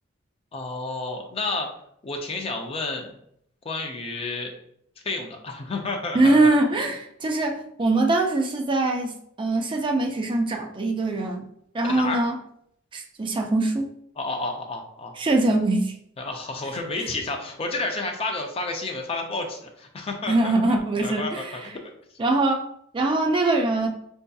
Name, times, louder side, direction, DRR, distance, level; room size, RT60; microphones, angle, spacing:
voice 1, 0.5-1.7 2.0-3.1 3.6-4.5 5.0-6.5 11.8-12.2 14.2-15.1 16.2-20.7 21.0-21.8, left 3 dB, 30° left, 2 dB, 0.4 m, -31 dB
voice 2, 6.1-11.4 11.7-12.3 12.9-13.9 15.2-15.9 20.3-21.5 22.2-22.6 22.9-23.9, right 2 dB, 25° right, 3 dB, 0.4 m, -22 dB
4.4 x 2.6 x 2.3 m, 0.71 s
head